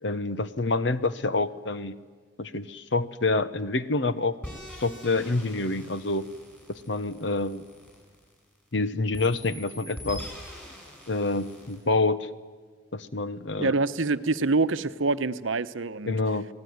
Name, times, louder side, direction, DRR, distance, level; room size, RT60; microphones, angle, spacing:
voice 1, 0.0-2.0 2.4-4.4 4.8-6.3 6.7-7.6 8.7-10.2 11.1-12.3 12.9-13.7 16.1-16.5, left 3 dB, 65° left, 13 dB, 1.0 m, -27 dB
sound 1, 4.4-8.7 9.1-11.8, equal, 10° left, 7.6 m, -44 dB
voice 2, 13.6-16.2, right 3 dB, 85° right, 12 dB, 0.9 m, -26 dB
28.0 x 18.5 x 9.5 m, 1.5 s
head